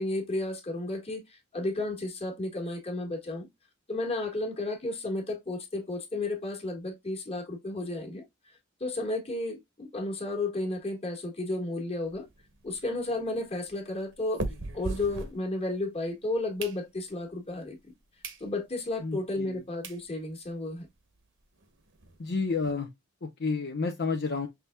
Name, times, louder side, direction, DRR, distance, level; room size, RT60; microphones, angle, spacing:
voice 1, 0.0-3.5 3.9-8.2 8.8-12.3 12.6-14.4 14.7-17.9 18.4-20.9, left 2 dB, 30° left, 1.6 m, -33 dB
sound 1, 12.0-15.9 16.3-17.3 17.8-17.9 18.2-18.4 18.9-19.0 19.5-19.6 19.8-20.0 20.5-20.6 20.7-20.9 21.1-21.2 21.6-22.7, right 2 dB, 60° right, 1.1 m, -40 dB
voice 2, 19.0-19.6 22.2-22.9 23.2-24.5, left 4 dB, 50° left, 0.7 m, -30 dB
5.9 x 3.3 x 2.2 m
head